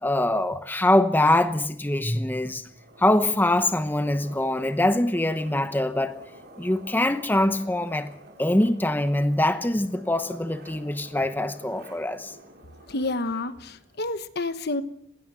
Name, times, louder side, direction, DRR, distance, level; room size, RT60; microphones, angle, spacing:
voice 1, 0.0-2.7 3.0-6.2 6.6-8.1 8.4-12.3, left 1 dB, 10° left, 0.9 m, -23 dB
sound 1, 2.7-14.2, right 1 dB, 55° right, 5.2 m, -48 dB
voice 2, 12.9-14.8, left 2 dB, 50° left, 1.2 m, -29 dB
19.5 x 18.5 x 7.8 m
head